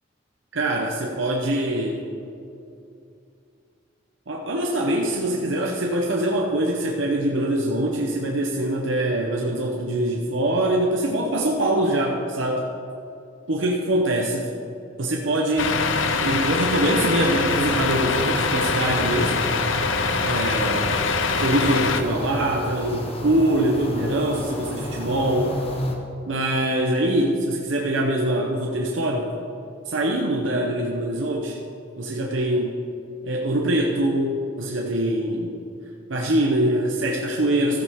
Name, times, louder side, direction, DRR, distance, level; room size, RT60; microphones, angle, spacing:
voice 1, 0.5-2.1 4.3-12.7 13.5-14.5 15.0-15.7 16.0-19.4 20.2-20.9 21.4-25.5 26.3-29.3 29.9-31.6 32.0-32.8 33.2-35.6 36.1-37.8, right 1 dB, 80° right, 0 dB, 0.9 m, -23 dB
Truck, 15.6-22.0, left 4 dB, 85° left, 0.7 m, -23 dB
sound 1, 17.4-25.9, left 1 dB, 30° left, 1.0 m, -32 dB
14.0 x 8.4 x 3.6 m, 2.6 s
head